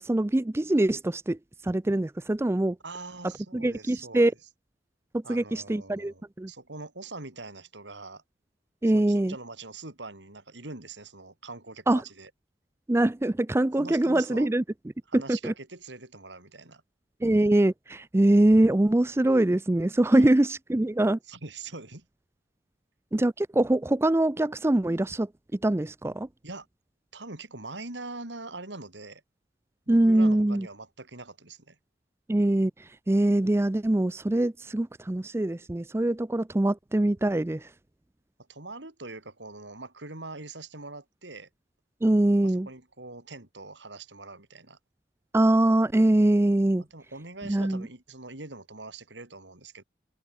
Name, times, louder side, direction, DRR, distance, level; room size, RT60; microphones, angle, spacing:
voice 1, 0.0-1.4 1.6-2.8 3.5-4.3 5.1-6.5 8.8-9.3 11.9-12.0 12.9-14.6 15.1-15.5 17.2-21.2 23.1-25.3 25.6-26.3 29.9-30.7 32.3-37.7 42.0-42.7 45.3-46.8 47.5-47.9, right 1 dB, 15° right, 0.4 m, -23 dB
voice 2, 2.8-4.3 5.2-8.2 8.9-12.3 13.8-14.5 15.1-16.8 20.1-20.3 21.3-22.1 26.4-26.7 27.1-29.2 29.9-31.8 38.5-41.5 42.4-44.8 46.8-49.8, right 3 dB, 75° right, 3.9 m, -43 dB
head